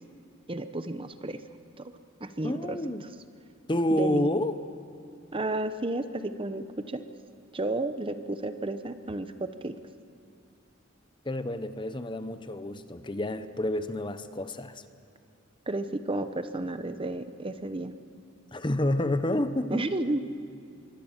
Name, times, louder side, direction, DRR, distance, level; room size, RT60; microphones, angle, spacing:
voice 1, 0.5-1.4 1.8-1.9 2.2-2.8 3.9-4.3 5.3-7.0 7.5-9.7 15.7-17.9 19.7-20.2, right 2 dB, 25° right, 10 dB, 0.9 m, -32 dB
voice 2, 2.4-3.0 3.7-4.5 11.2-14.8 18.5-19.9, left 1 dB, 25° left, 11 dB, 0.8 m, -29 dB
25.5 x 23.5 x 7.3 m, 2.6 s
head